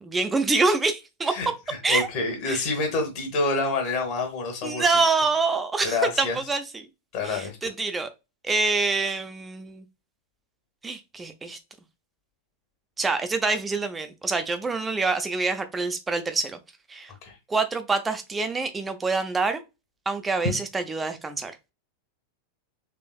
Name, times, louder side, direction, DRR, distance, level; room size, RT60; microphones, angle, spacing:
voice 1, 0.0-1.4 1.8-2.1 2.5-2.6 4.6-6.8 7.2-8.1 8.4-9.8 10.8-11.6 13.0-16.6 16.9-17.1 17.5-19.6 20.1-21.5, right 3 dB, 15° right, 0.6 m, -26 dB
voice 2, 1.3-4.9 5.8-6.4 7.1-7.6 17.2-17.4, left 3 dB, 45° left, 1.3 m, -27 dB
3.6 x 3.3 x 2.3 m
figure-of-eight pair, 90°, 0 cm